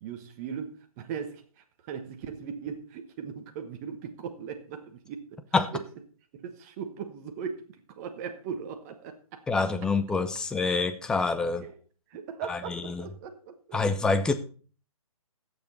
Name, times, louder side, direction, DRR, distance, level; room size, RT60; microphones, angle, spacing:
voice 1, 0.0-5.4 5.7-5.8 6.4-9.4 11.6-11.8 12.1-13.8, right 7 dB, 25° right, 1.1 m, -39 dB
voice 2, 9.5-11.6 12.5-13.0 13.7-14.3, left 4 dB, 5° left, 0.5 m, -26 dB
16.5 x 7.0 x 4.1 m
figure-of-eight pair, 135°, 19 cm